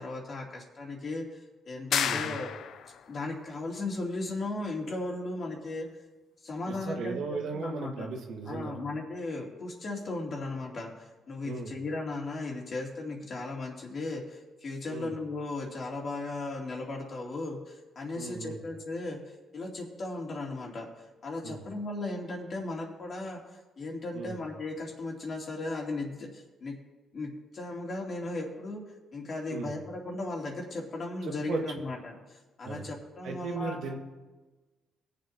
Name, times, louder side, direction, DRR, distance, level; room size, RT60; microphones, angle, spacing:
voice 1, 0.0-2.5 3.1-5.9 6.4-8.1 8.5-19.2 19.5-20.9 21.2-23.4 23.8-26.8 27.1-28.8 29.1-33.9, left 2 dB, 50° left, -1 dB, 2.7 m, -36 dB
sound 1, 1.9-3.0, left 8 dB, 70° left, 0.5 m, -30 dB
voice 2, 2.0-2.4 6.7-8.8 11.4-11.7 14.9-15.1 18.1-18.6 21.4-21.6 24.1-24.4 29.5-29.8 31.3-31.6 32.6-32.8 33.2-34.0, right 4 dB, 80° right, 2 dB, 1.6 m, -36 dB
21.5 x 7.6 x 2.9 m, 1.2 s
cardioid pair, 90°, 0 cm